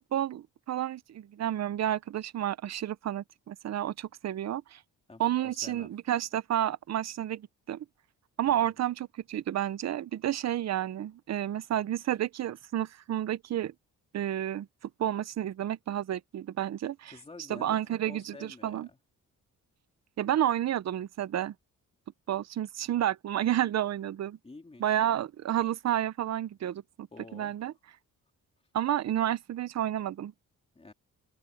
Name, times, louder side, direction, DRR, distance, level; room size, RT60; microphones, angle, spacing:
voice 1, 0.1-4.8 5.2-7.8 8.4-13.7 14.1-14.7 15.0-17.1 17.5-18.9 20.2-21.5 22.3-24.4 24.8-27.1 27.3-27.7 28.7-30.3, right 11 dB, 50° right, 0.7 m, -30 dB
voice 2, 5.1-5.9 8.4-8.7 17.1-19.0 22.8-23.0 24.4-25.0 27.1-27.6 30.7-30.9, left 3 dB, 15° left, 3.1 m, -49 dB
cardioid pair, 125°, 34 cm